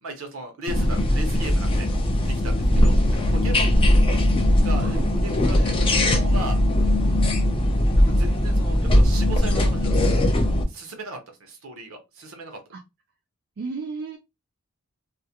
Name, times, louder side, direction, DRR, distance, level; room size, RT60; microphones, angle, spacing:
voice 1, 0.0-1.9 2.3-2.5 2.8-3.0 3.3-3.8 4.6-5.7 6.0-6.6 7.9-9.9 10.7-12.6, right 2 dB, 65° right, 0.8 m, -36 dB
sound 1, 0.7-10.6, left 1 dB, 25° left, 0.4 m, -20 dB
voice 2, 3.6-3.9 4.8-5.3 12.7-12.8 13.6-14.2, right 4 dB, 50° right, 0.4 m, -34 dB
2.4 x 2.1 x 2.8 m
head